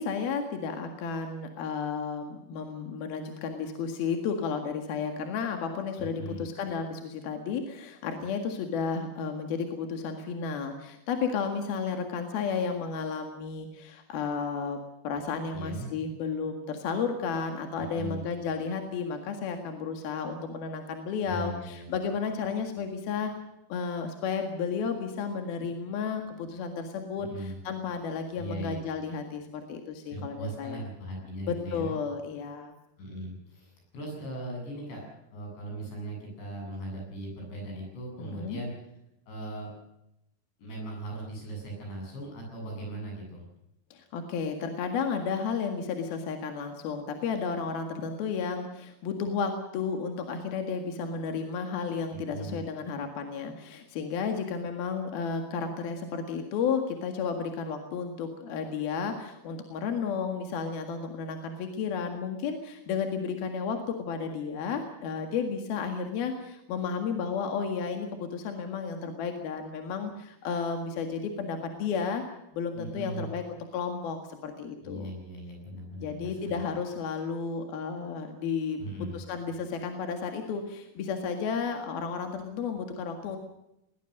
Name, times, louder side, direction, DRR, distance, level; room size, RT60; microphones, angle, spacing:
voice 1, 0.0-23.3 23.7-30.8 31.5-32.7 38.2-38.6 43.9-75.1 76.0-78.8 79.1-83.4, left 5 dB, 65° left, 5 dB, 3.6 m, -33 dB
voice 2, 6.0-6.4 15.5-15.9 17.9-18.2 21.3-21.9 27.3-27.5 28.4-28.8 30.1-32.0 33.0-35.1 35.3-38.8 39.3-39.7 40.6-43.5 52.1-52.6 72.8-73.3 74.8-76.6 78.8-79.2, right 1 dB, 85° left, 1 dB, 10.5 m, -38 dB
20.5 x 20.5 x 6.6 m, 0.85 s
omnidirectional pair, 4.9 m